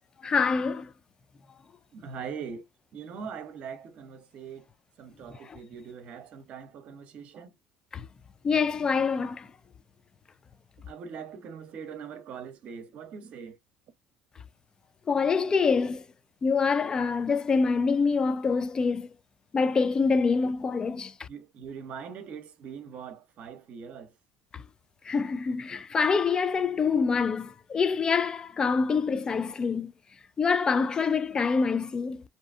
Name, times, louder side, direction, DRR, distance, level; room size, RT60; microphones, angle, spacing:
voice 1, 0.2-0.9 5.4-5.6 7.9-8.1 8.4-9.5 15.1-16.0 16.4-19.1 19.5-21.3 24.5-24.6 25.0-29.9 30.4-32.2, left 5 dB, 30° left, 0.3 m, -26 dB
voice 2, 1.9-2.7 2.9-4.7 5.0-7.5 10.8-13.6 21.3-24.1, right 6 dB, 55° right, 0.7 m, -41 dB
2.6 x 2.3 x 2.4 m
supercardioid pair, 80°, 3 cm